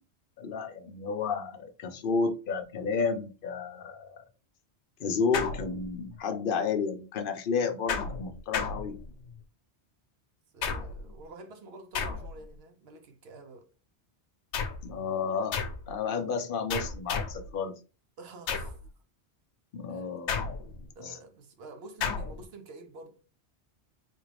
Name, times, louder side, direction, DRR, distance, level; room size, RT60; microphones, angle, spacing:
voice 1, 0.4-4.2 5.0-8.9 14.8-17.8 19.7-20.4 21.0-21.1, left 5 dB, 60° left, 0.7 m, -31 dB
sound 1, 5.3-6.2 7.9-9.4 10.6-11.2 11.9-12.6 14.5-14.9 15.5-15.9 16.7-17.5 18.5-18.9 20.3-20.9 22.0-22.4, left 5 dB, 85° left, 0.9 m, -33 dB
voice 2, 10.5-13.7 18.2-18.8 19.9-20.0 21.0-23.2, right 2 dB, 65° right, 0.9 m, -48 dB
3.6 x 2.4 x 3.2 m
omnidirectional pair, 1.1 m